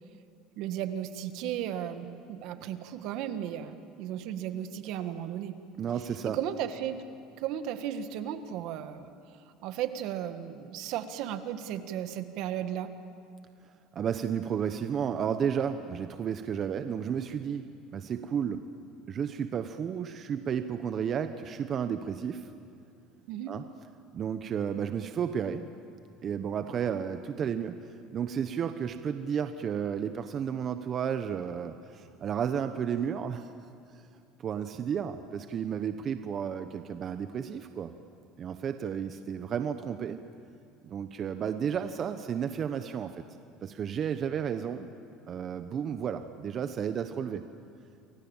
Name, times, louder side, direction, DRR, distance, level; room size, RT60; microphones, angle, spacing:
voice 1, 0.6-5.6 6.2-7.0 7.4-9.1 9.6-12.9 23.3-23.5, right 10 dB, 70° right, 9 dB, 1.8 m, -35 dB
voice 2, 5.8-6.4 13.9-18.6 19.1-22.5 23.5-23.6 24.1-25.7 26.2-33.5 34.4-37.9 38.4-40.2 40.8-43.2 43.6-44.9 45.3-47.4, right 8 dB, 40° right, 9 dB, 1.0 m, -32 dB
29.0 x 23.0 x 7.3 m, 2.6 s
supercardioid pair, 115°, 0 cm